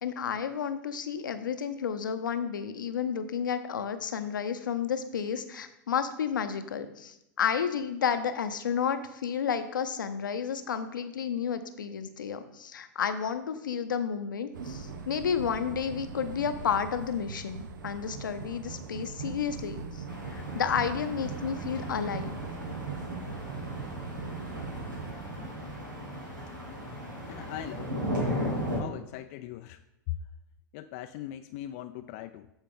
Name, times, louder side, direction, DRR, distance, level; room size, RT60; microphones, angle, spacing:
voice 1, 0.0-20.0 20.3-22.4, left 7 dB, 80° left, 9 dB, 0.7 m, -31 dB
sound 1, 14.5-25.1, right 5 dB, 75° right, 0.8 m, -40 dB
sound 2, 20.1-28.8, equal, 90° right, 2.2 m, -36 dB
voice 2, 27.3-27.9 28.8-29.8 30.1-30.2 30.7-32.5, left 13 dB, 55° left, 9 dB, 0.4 m, -39 dB
11.5 x 4.5 x 3.8 m, 0.85 s
hypercardioid pair, 100°, 10 cm